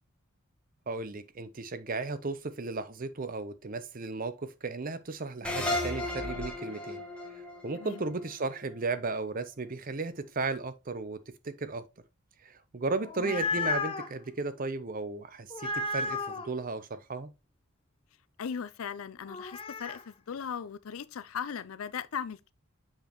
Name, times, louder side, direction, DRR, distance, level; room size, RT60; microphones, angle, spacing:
voice 1, 0.9-7.0 7.3-11.2 11.4-11.9 12.4-17.3, right 3 dB, 40° right, 0.6 m, -35 dB
sound 1, 5.4-8.8, left 1 dB, 5° left, 1.2 m, -34 dB
voice 2, 7.7-8.0 13.2-13.4 18.4-22.5, left 7 dB, 75° left, 0.5 m, -38 dB
sound 2, 13.0-14.1 15.5-16.5 19.3-20.0, left 3 dB, 25° left, 0.6 m, -33 dB
7.4 x 5.1 x 3.0 m
head